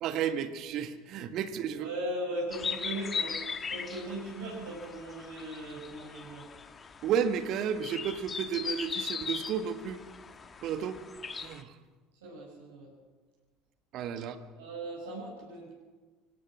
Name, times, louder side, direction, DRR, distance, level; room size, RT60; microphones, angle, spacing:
voice 1, 0.0-1.9 7.0-10.0 10.6-11.0 11.3-11.7 13.9-14.4, right 8 dB, 50° right, 10 dB, 1.6 m, -32 dB
voice 2, 1.8-6.5 12.2-12.9 14.6-15.7, right 1 dB, 70° right, -7 dB, 6.7 m, -38 dB
sound 1, 2.5-11.6, left 5 dB, 30° left, 1.6 m, -39 dB
24.5 x 17.5 x 6.3 m, 1.4 s
figure-of-eight pair, 65°, 0 cm